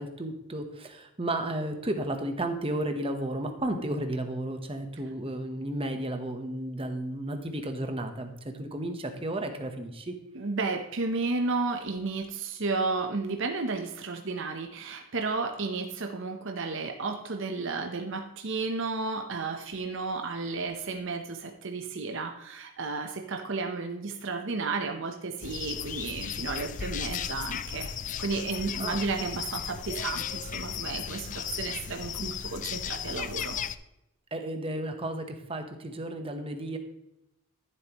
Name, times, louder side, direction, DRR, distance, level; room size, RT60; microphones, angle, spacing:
voice 1, 0.0-10.1 28.8-29.0 34.3-36.8, right 1 dB, 25° right, 6 dB, 1.0 m, -33 dB
voice 2, 10.3-27.9 28.2-33.6, right 3 dB, 60° right, 4 dB, 0.9 m, -32 dB
sound 1, 25.4-33.8, left 8 dB, 35° left, 0.4 m, -35 dB
13.0 x 7.7 x 3.0 m, 0.87 s
head